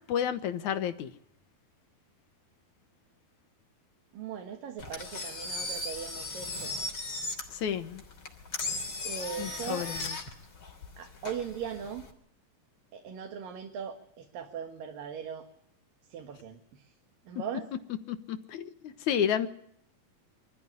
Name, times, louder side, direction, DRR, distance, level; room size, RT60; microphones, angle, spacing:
voice 1, 0.1-1.1 7.5-8.0 9.4-10.2 18.1-19.5, left 9 dB, 70° left, 10 dB, 2.4 m, -31 dB
voice 2, 4.1-6.8 9.1-9.9 11.0-12.1 12.9-15.5 16.1-16.8 17.3-17.7, right 7 dB, 85° right, 4 dB, 3.5 m, -39 dB
Engine, 4.8-12.1, left 3 dB, 35° left, 3.8 m, -37 dB
25.0 x 14.0 x 9.9 m, 0.69 s
omnidirectional pair, 3.8 m